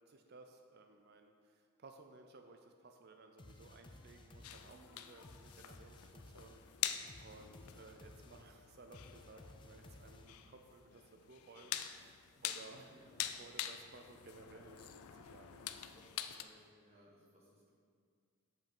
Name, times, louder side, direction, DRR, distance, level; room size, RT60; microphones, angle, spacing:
voice 1, 0.0-12.9 13.4-15.9, right 3 dB, 45° right, 5 dB, 0.5 m, -58 dB
sound 1, 3.4-10.6, left 1 dB, 20° left, 0.4 m, -58 dB
sound 2, 4.4-16.4, left 11 dB, 80° left, 0.4 m, -46 dB
voice 2, 4.7-5.0 12.3-13.4 15.9-17.7, right 1 dB, 30° right, -5 dB, 1.4 m, -64 dB
7.4 x 5.4 x 5.3 m, 2.1 s
head